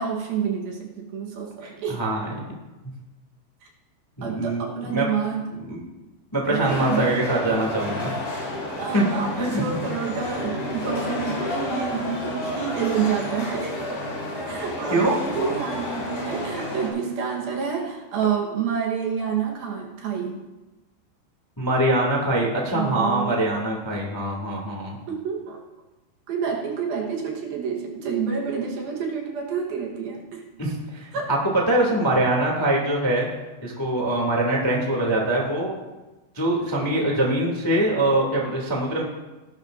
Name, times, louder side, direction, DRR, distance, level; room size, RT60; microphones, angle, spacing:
voice 1, 0.0-2.0 4.2-5.5 6.5-7.2 8.8-13.8 14.5-20.4 22.7-23.4 25.1-25.6 26.3-30.4 31.1-31.3, right 6 dB, 70° right, 0 dB, 2.9 m, -28 dB
voice 2, 1.6-2.3 4.2-5.0 5.6-5.8 6.3-8.1 8.9-9.0 9.4-9.8 14.9-15.2 21.6-25.0 30.6-31.1 31.7-33.3 33.6-35.7 36.3-39.0, right 1 dB, 10° left, -3 dB, 1.1 m, -23 dB
sound 1, 6.6-16.9, left 1 dB, 70° left, 5.7 m, -31 dB
17.5 x 12.0 x 2.6 m, 1.1 s
omnidirectional pair, 4.9 m